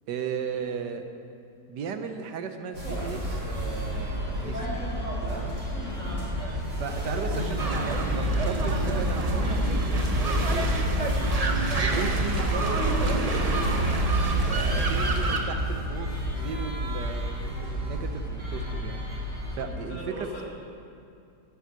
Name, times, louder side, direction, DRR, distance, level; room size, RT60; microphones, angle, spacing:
voice 1, 0.1-1.0 1.7-4.7 5.3-5.6 6.3-9.8 10.1-10.7 11.8-13.7 14.3-19.3 19.5-20.3, right 6 dB, 90° right, 7 dB, 1.5 m, -36 dB
sound 1, 2.7-19.6, equal, 50° right, 4.3 m, -31 dB
sound 2, 7.6-15.4, right 1 dB, 30° right, 0.9 m, -26 dB
voice 2, 19.6-20.4, equal, 55° left, -5 dB, 3.3 m, -41 dB
11.0 x 8.5 x 8.3 m, 2.5 s
omnidirectional pair, 1.8 m